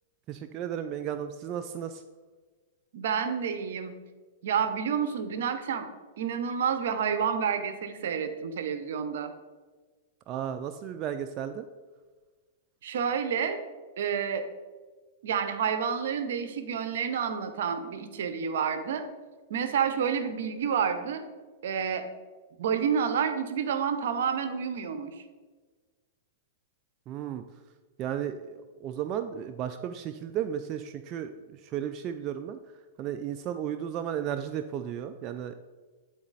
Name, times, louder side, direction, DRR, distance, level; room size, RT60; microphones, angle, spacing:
voice 1, 0.3-2.0 10.3-11.7 27.1-27.4 28.0-31.3 31.6-32.6 33.0-35.5, right 9 dB, 35° right, 7 dB, 0.3 m, -34 dB
voice 2, 2.9-3.9 4.4-5.9 6.2-9.3 12.8-13.6 14.0-14.4 15.2-19.0 19.5-21.2 21.6-22.1 22.6-25.1, right 7 dB, 70° right, 9 dB, 0.7 m, -29 dB
8.5 x 4.0 x 4.0 m, 1.4 s
hypercardioid pair, 130°, 0 cm